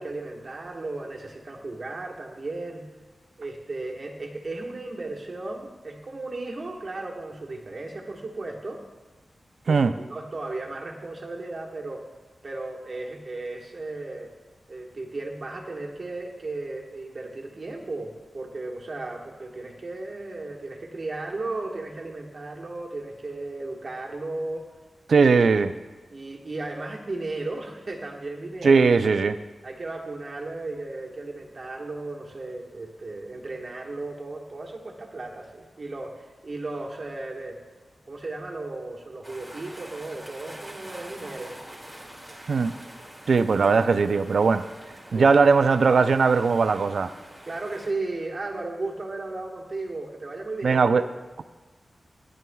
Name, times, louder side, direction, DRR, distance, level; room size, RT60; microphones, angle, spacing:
voice 1, 0.0-2.9 3.4-8.8 9.6-12.1 12.4-14.3 14.7-24.6 26.1-29.2 29.6-37.6 38.1-41.5 45.1-45.3 47.4-50.8, right 2 dB, 45° right, 0 dB, 1.4 m, -35 dB
voice 2, 25.1-25.7 28.6-29.4 42.5-42.7 43.3-44.6 45.1-47.1 50.6-51.0, right 4 dB, 70° right, 11 dB, 0.4 m, -19 dB
sound 1, 39.2-47.9, right 1 dB, 5° right, 2.2 m, -45 dB
15.5 x 10.5 x 2.3 m, 1.3 s
wide cardioid pair, 135°, 0 cm